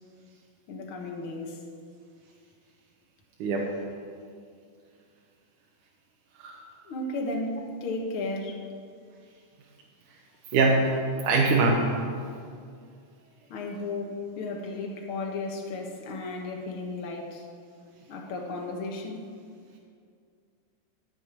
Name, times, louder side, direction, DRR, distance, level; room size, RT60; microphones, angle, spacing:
voice 1, 0.7-1.6 6.9-8.6 13.5-17.5 18.1-19.3, left 2 dB, 50° left, 1 dB, 1.8 m, -34 dB
voice 2, 10.5-10.9 11.2-11.9, right 3 dB, 75° right, -2 dB, 2.5 m, -22 dB
14.5 x 6.6 x 7.6 m, 2.3 s
omnidirectional pair, 3.9 m